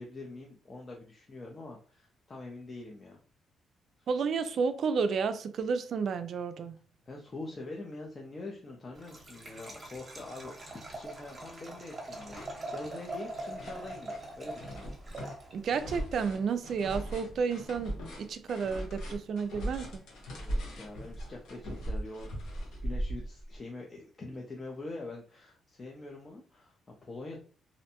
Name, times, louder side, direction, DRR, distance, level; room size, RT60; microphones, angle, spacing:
voice 1, 0.0-3.2 4.0-4.1 7.1-14.7 20.4-22.4 22.8-27.4, left 2 dB, 35° left, 0.5 m, -44 dB
voice 2, 4.1-6.8 15.5-20.0, right 5 dB, 60° right, 0.3 m, -31 dB
Liquid, 8.9-15.8, right 1 dB, 30° right, 0.8 m, -43 dB
sound 1, 10.9-11.6 11.9-23.6, equal, 80° left, 0.9 m, -39 dB
2.5 x 2.1 x 2.8 m
cardioid pair, 90°, 0 cm